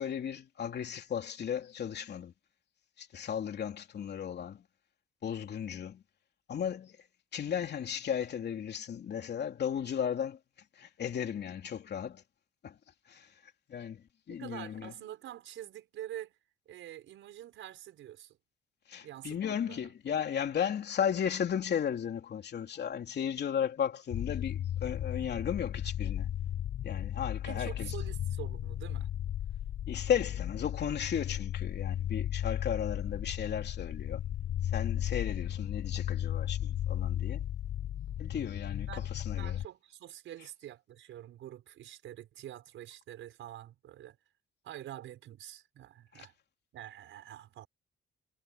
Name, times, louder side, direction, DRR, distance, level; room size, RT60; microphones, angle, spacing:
voice 1, 0.0-2.3 3.0-4.6 5.2-6.0 6.5-7.0 7.3-10.4 10.8-12.2 12.6-12.8 13.1-13.3 13.7-14.9 18.9-26.3 26.8-27.9 29.9-34.2 34.7-37.4 38.2-39.6 46.1-46.3, left 8 dB, 55° left, 3.3 m, -35 dB
voice 2, 14.3-16.4 16.7-18.4 19.0-19.4 19.7-19.9 27.4-29.1 38.9-44.2 44.6-46.3 46.7-47.7, right 12 dB, 80° right, 5.6 m, -46 dB
sound 1, 24.1-39.7, left 11 dB, 75° left, 5.0 m, -35 dB
cardioid pair, 90°, 20 cm